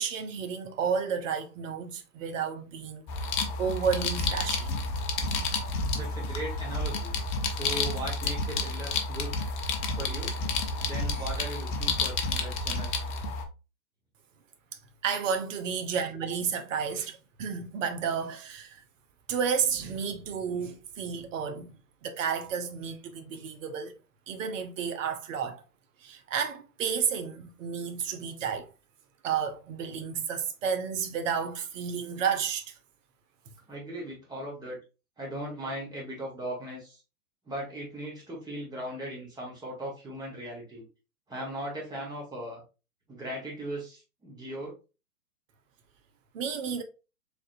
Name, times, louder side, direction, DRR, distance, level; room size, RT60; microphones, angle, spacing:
voice 1, 0.0-3.0 3.6-4.7 15.0-18.8 19.3-21.7 22.0-23.9 24.3-25.6 26.0-28.7 29.2-32.7 46.3-46.8, right 6 dB, 55° right, 0.8 m, -31 dB
sound 1, 3.1-13.5, left 3 dB, 35° left, 0.7 m, -30 dB
voice 2, 5.9-7.2 7.5-9.4 9.9-10.4 10.8-12.9 33.7-34.8 35.2-37.0 37.4-40.9 41.3-42.6 43.1-44.7, right 1 dB, 10° right, 1.4 m, -38 dB
3.8 x 3.4 x 2.5 m
hypercardioid pair, 125°, 45 cm